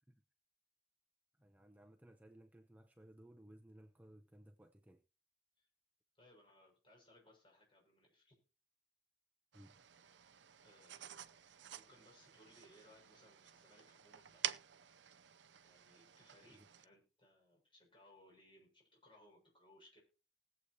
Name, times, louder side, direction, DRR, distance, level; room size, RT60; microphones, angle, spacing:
voice 1, 1.3-5.0 9.5-9.8 16.4-16.7, right 1 dB, 10° right, 0.7 m, -61 dB
voice 2, 6.1-8.4 10.6-11.4 11.7-14.5 15.6-20.0, left 1 dB, 30° left, 6.5 m, -66 dB
sound 1, 9.5-16.8, right 11 dB, 75° right, 0.6 m, -49 dB
20.0 x 8.0 x 2.8 m
head